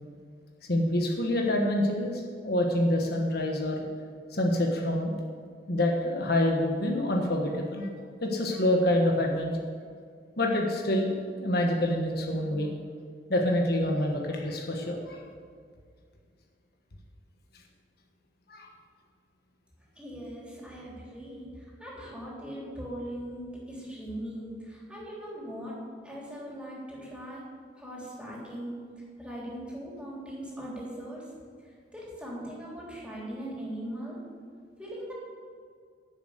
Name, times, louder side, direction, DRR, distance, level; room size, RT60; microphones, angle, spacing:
voice 1, 0.7-3.8 4.3-5.1 5.7-7.9 8.2-9.5 10.4-11.1 11.4-12.7 13.3-15.2 18.5-18.7, left 1 dB, 60° left, 1 dB, 1.4 m, -26 dB
voice 2, 20.0-27.4 27.8-28.9 29.2-31.2 31.9-34.2 34.8-35.1, equal, 5° right, -5 dB, 3.6 m, -40 dB
11.0 x 7.4 x 8.0 m, 2.1 s
head